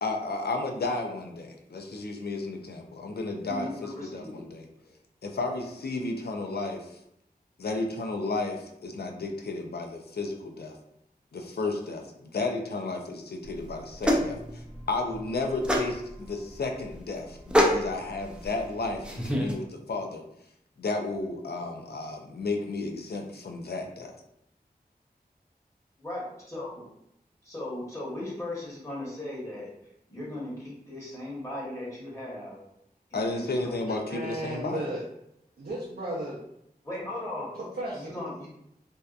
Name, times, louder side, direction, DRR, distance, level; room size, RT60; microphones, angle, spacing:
voice 1, 0.0-4.7 5.2-6.9 7.6-10.8 11.3-20.2 20.8-24.1 33.1-34.8, left 3 dB, 75° left, 4 dB, 0.4 m, -33 dB
voice 2, 3.5-4.4 26.0-26.8 27.4-29.7 30.1-32.6 33.1-33.8 34.2-34.3 36.8-37.5 37.9-38.5, left 1 dB, 15° left, -6 dB, 1.1 m, -37 dB
sound 1, 13.4-19.5, equal, 5° right, 0.4 m, -28 dB
voice 3, 33.9-35.0 35.6-36.4 37.5-38.2, right 1 dB, 80° right, -6 dB, 0.5 m, -35 dB
2.7 x 2.2 x 2.4 m, 0.79 s
wide cardioid pair, 50°, 16 cm